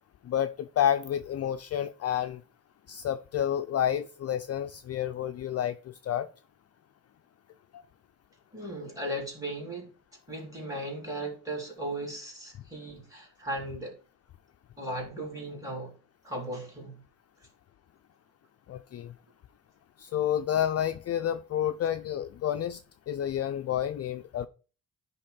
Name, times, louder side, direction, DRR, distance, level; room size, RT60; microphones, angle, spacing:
voice 1, 0.3-2.4 2.9-6.3 18.7-19.1 20.0-22.8 23.1-24.5, left 10 dB, 45° left, 0.5 m, -29 dB
voice 2, 8.5-9.9 10.3-13.9 14.8-15.9 16.2-17.0, right 1 dB, 10° right, 3.9 m, -37 dB
10.0 x 3.6 x 3.9 m
cardioid pair, 120°, 36 cm